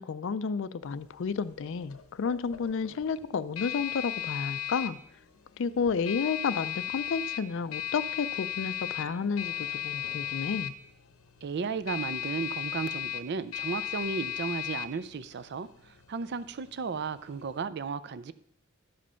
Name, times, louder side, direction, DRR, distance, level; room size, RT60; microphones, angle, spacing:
voice 1, 0.0-5.0 5.6-10.7, left 5 dB, 60° left, 14 dB, 0.4 m, -31 dB
sound 1, 0.8-17.7, left 12 dB, 80° left, 0.8 m, -37 dB
voice 2, 11.4-18.3, right 5 dB, 50° right, 14 dB, 0.4 m, -34 dB
12.0 x 5.2 x 5.6 m, 0.72 s
head